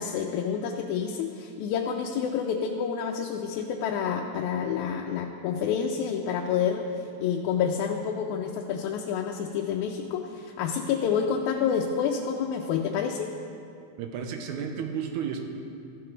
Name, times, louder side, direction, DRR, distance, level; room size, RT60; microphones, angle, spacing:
voice 1, 0.0-13.3, left 7 dB, 85° left, 2 dB, 1.9 m, -28 dB
voice 2, 14.0-15.5, right 7 dB, 85° right, 4 dB, 2.2 m, -32 dB
14.0 x 7.6 x 3.8 m, 2.5 s
omnidirectional pair, 3.4 m